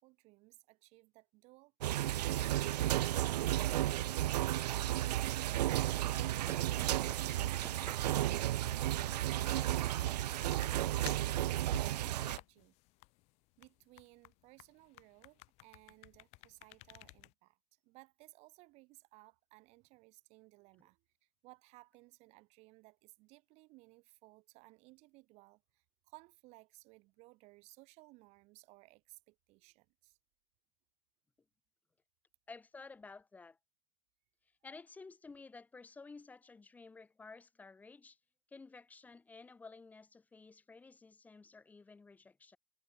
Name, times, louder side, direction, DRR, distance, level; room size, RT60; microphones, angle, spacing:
voice 1, 0.0-10.8 11.2-12.8 13.6-30.2, right 23 dB, 30° right, 7.1 m, -61 dB
sound 1, 1.8-12.4, right 13 dB, 80° right, 0.5 m, -33 dB
Run, 4.0-10.0, right 6 dB, 10° right, 6.8 m, -55 dB
Thumbing through book, 7.3-17.3, left 24 dB, 30° left, 3.5 m, -55 dB
voice 2, 32.5-33.6 34.6-38.2 38.5-42.6, left 4 dB, 5° left, 6.6 m, -53 dB
supercardioid pair, 165°, 21 cm